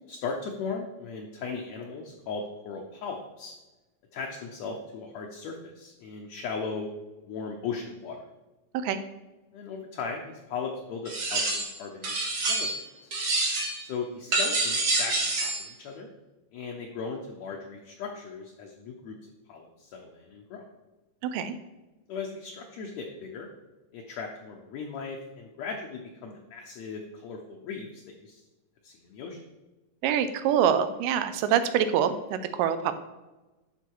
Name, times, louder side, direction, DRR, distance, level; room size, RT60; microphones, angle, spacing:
voice 1, 0.1-3.5 4.1-6.9 7.2-8.2 9.5-12.7 13.0-13.1 13.8-16.1 16.5-19.1 19.5-20.6 22.1-23.5 23.9-28.4 28.8-29.4, left 5 dB, 70° left, 1 dB, 1.7 m, -37 dB
sound 1, 11.1-11.7 12.0-12.8 13.1-13.8 14.3-15.6, right 2 dB, 55° right, 1.1 m, -27 dB
voice 2, 30.0-32.9, right 9 dB, 85° right, 11 dB, 2.2 m, -25 dB
11.5 x 3.9 x 4.6 m, 1.1 s
omnidirectional pair, 3.8 m